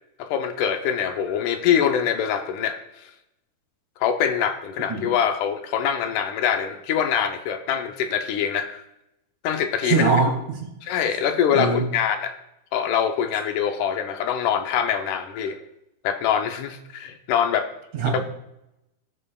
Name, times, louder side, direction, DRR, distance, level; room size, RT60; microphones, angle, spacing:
voice 1, 0.2-3.1 4.0-8.8 9.4-10.1 10.8-12.4 12.7-15.6 16.0-17.7, left 8 dB, 80° left, 6 dB, 2.1 m, -24 dB
voice 2, 9.8-10.6 11.5-11.9 17.9-18.2, right 4 dB, 75° right, -1 dB, 3.4 m, -22 dB
16.0 x 5.4 x 2.3 m, 0.85 s
omnidirectional pair, 3.7 m